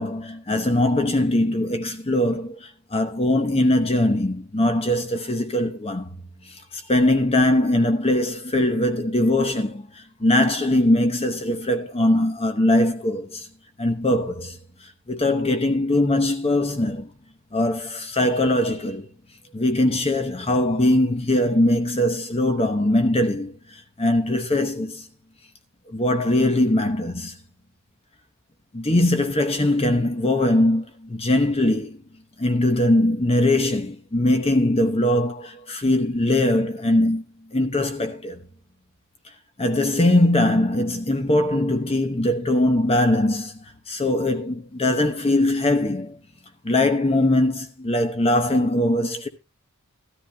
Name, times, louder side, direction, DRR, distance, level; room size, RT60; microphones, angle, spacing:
voice 1, 0.0-6.1 6.5-13.5 13.8-14.6 15.1-17.1 17.5-19.1 19.5-25.0 25.9-27.3 28.7-32.0 32.4-37.2 37.5-38.4 39.6-43.6 43.9-46.2 46.6-49.3, left 1 dB, 25° left, 0.9 m, -21 dB
14.5 x 13.0 x 2.3 m
head